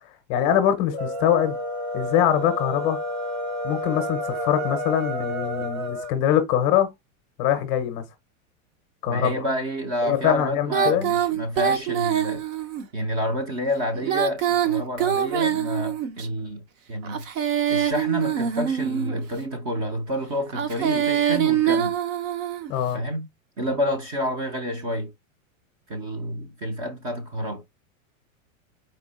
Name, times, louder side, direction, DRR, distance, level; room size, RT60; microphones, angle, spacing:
voice 1, 0.3-1.6 1.9-3.0 3.6-6.9 7.4-8.0 9.0-9.4 10.0-11.1 22.7-23.0, left 10 dB, 25° left, 0.6 m, -23 dB
sound 1, 0.8-6.1, left 1 dB, 85° right, 2.1 m, -30 dB
voice 2, 9.1-12.4 12.9-16.6 16.9-17.2 17.7-22.0 22.9-23.3 23.6-25.1 25.9-27.6, equal, 30° right, 0.6 m, -29 dB
Female singing, 10.7-12.8 13.9-16.3 17.0-19.2 20.5-22.7, right 9 dB, 70° right, 1.1 m, -24 dB
4.4 x 2.7 x 4.0 m
supercardioid pair, 170°, 41 cm